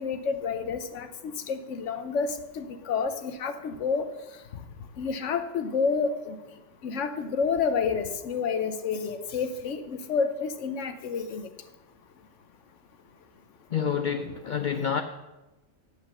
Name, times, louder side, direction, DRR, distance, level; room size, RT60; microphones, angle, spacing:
voice 1, 0.0-4.1 5.0-6.4 6.8-11.5, left 5 dB, 65° left, 9 dB, 1.0 m, -29 dB
voice 2, 13.7-15.0, left 7 dB, 90° left, 8 dB, 0.4 m, -28 dB
7.9 x 7.8 x 6.6 m, 1.1 s
omnidirectional pair, 1.4 m